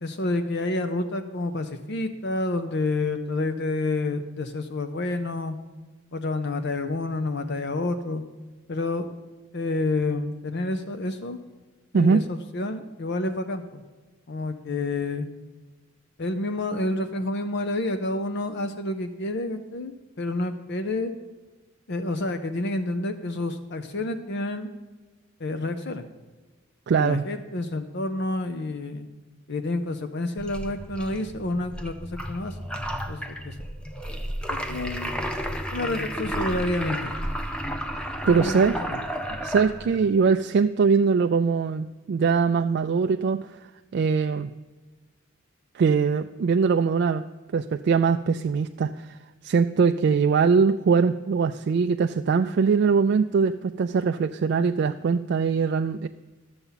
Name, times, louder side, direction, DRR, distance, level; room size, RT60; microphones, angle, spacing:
voice 1, 0.0-5.6 6.1-8.2 8.7-9.1 9.5-11.4 11.9-13.8 14.3-15.3 16.2-21.1 21.9-24.7 25.4-26.1 27.0-29.1 29.5-32.6 33.1-33.5 34.5-35.1 35.7-37.1 38.2-39.0, left 2 dB, 55° left, 9 dB, 0.6 m, -29 dB
voice 2, 26.9-27.2 38.3-38.8 39.4-43.5 43.9-44.5 45.7-47.2 47.5-49.1 49.4-56.1, right 5 dB, 50° right, 6 dB, 0.3 m, -22 dB
sound 1, 30.4-40.1, equal, 5° left, 0.6 m, -32 dB
12.0 x 7.0 x 5.6 m, 1.3 s
head